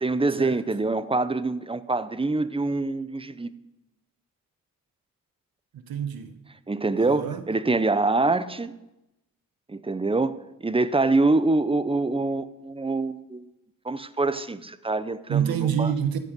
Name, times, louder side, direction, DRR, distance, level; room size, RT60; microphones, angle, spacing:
voice 1, 0.0-3.5 6.7-8.7 9.7-13.5 13.8-15.9, right 3 dB, 15° right, 15 dB, 0.6 m, -25 dB
voice 2, 5.7-6.4 7.0-7.4 15.3-16.2, right 8 dB, 90° right, 9 dB, 1.1 m, -27 dB
13.5 x 8.4 x 5.3 m, 0.96 s
cardioid pair, 65°, 35 cm